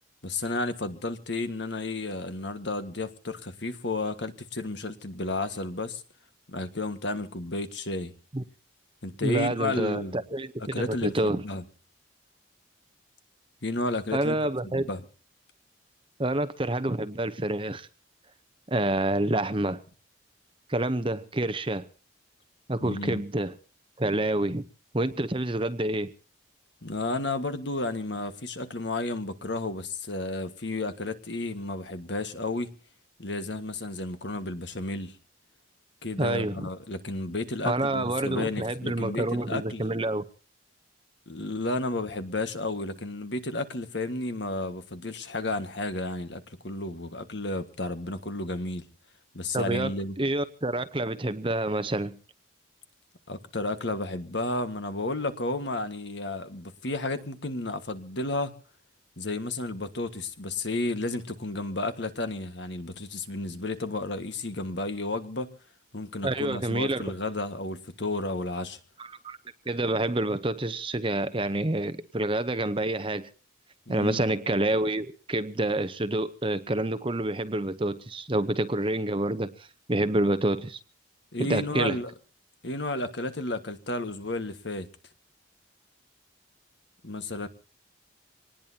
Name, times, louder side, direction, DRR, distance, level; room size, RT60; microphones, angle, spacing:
voice 1, 0.2-6.0 6.5-8.1 9.0-10.2 10.6-11.6 13.6-14.4 14.6-15.0 22.8-23.2 26.8-32.7 33.2-35.2 36.0-39.8 41.3-48.9 49.3-50.1 53.3-58.5 59.2-65.5 65.9-68.8 73.9-74.2 81.3-82.1 82.6-84.9 87.0-87.5, left 2 dB, 60° left, 9 dB, 1.7 m, -32 dB
voice 2, 9.2-11.4 14.1-14.8 16.2-17.9 18.7-19.8 20.7-21.9 22.7-23.5 24.0-24.6 24.9-26.1 36.2-36.7 37.6-40.2 49.5-52.2 66.2-67.0 69.0-69.4 69.7-73.3 73.9-79.5 79.9-80.8 81.4-82.0, right 1 dB, 25° right, 13 dB, 0.8 m, -28 dB
25.0 x 19.5 x 2.9 m, 0.38 s
head